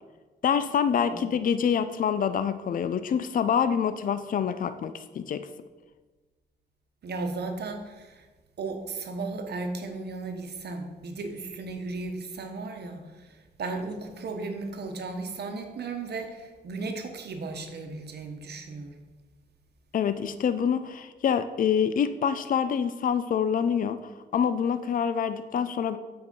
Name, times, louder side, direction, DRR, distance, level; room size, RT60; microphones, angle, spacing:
voice 1, 0.4-5.5 19.9-26.0, left 7 dB, 50° left, 12 dB, 0.4 m, -26 dB
voice 2, 7.0-8.2 8.6-13.0 13.6-18.9, right 3 dB, 70° right, 5 dB, 1.0 m, -35 dB
7.5 x 4.7 x 5.4 m, 1.3 s
wide cardioid pair, 105°, 18 cm